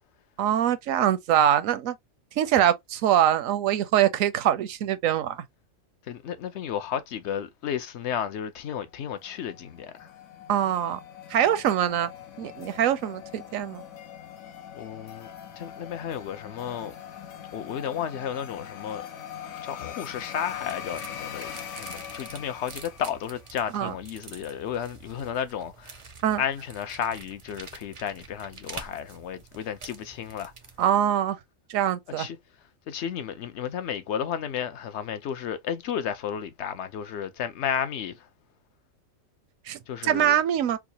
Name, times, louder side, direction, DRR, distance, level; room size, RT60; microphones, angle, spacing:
voice 1, 0.4-1.9 2.4-5.4 10.5-11.0 11.3-12.1 12.4-13.8 23.7-23.9 26.2-26.4 30.8-31.4 31.7-32.3 39.7-40.8, right 10 dB, 80° right, 1.0 m, -23 dB
voice 2, 6.0-10.1 14.7-17.0 17.5-19.1 19.6-26.0 26.4-30.5 32.2-32.4 32.9-38.3 39.9-40.4, left 8 dB, 60° left, 0.9 m, -33 dB
sound 1, 9.1-23.7, left 9 dB, 90° left, 1.2 m, -42 dB
sound 2, 20.1-30.9, right 4 dB, 40° right, 0.5 m, -47 dB
4.7 x 2.1 x 2.8 m
omnidirectional pair, 1.4 m